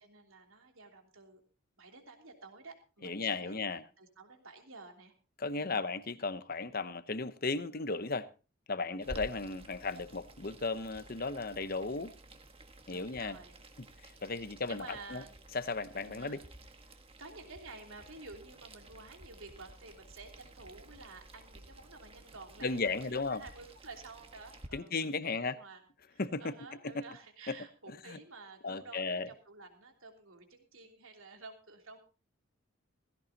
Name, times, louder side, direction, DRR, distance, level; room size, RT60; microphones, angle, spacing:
voice 1, 0.0-1.4 1.8-5.1 5.5-5.8 12.9-13.6 14.3-15.4 16.1-16.4 16.8-25.8 26.1-32.0, right 3 dB, 65° right, 3.2 m, -52 dB
voice 2, 3.0-3.8 5.4-8.3 8.7-12.1 12.9-13.4 14.0-15.2 15.5-16.4 22.6-23.4 24.7-25.6 26.2-26.5 26.9-27.0 27.5-27.6 27.9-28.2 28.6-29.3, left 3 dB, 40° left, 0.9 m, -35 dB
Boiling, 9.0-24.7, right 1 dB, 25° right, 1.4 m, -53 dB
17.0 x 16.0 x 2.9 m
head